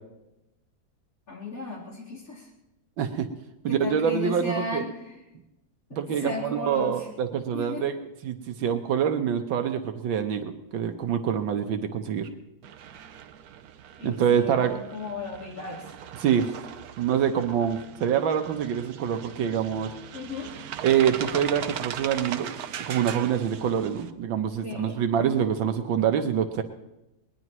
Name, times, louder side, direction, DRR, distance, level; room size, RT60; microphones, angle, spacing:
voice 1, 1.3-2.5 3.7-5.1 5.9-7.1 7.5-7.9 14.0-15.9 20.1-20.5 24.6-25.0, left 2 dB, 45° left, -4 dB, 3.9 m, -35 dB
voice 2, 3.0-3.3 3.6-4.8 5.9-7.9 8.2-12.3 14.0-14.8 16.2-16.5 17.0-19.9 20.8-22.6 22.9-26.6, right 8 dB, 80° right, 6 dB, 1.7 m, -25 dB
sound 1, 12.6-24.1, right 9 dB, 60° right, 1.1 m, -39 dB
20.5 x 20.5 x 3.0 m, 0.95 s
omnidirectional pair, 2.1 m